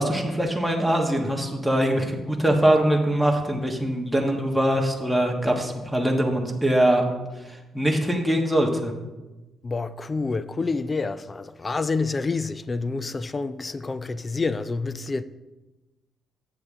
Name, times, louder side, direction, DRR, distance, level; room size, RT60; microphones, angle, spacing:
voice 1, 0.0-7.0 7.5-8.9, right 1 dB, ahead, 1.5 m, -22 dB
voice 2, 9.6-15.2, left 3 dB, 25° left, 0.4 m, -28 dB
8.3 x 7.4 x 3.7 m
cardioid pair, 90°, 0 cm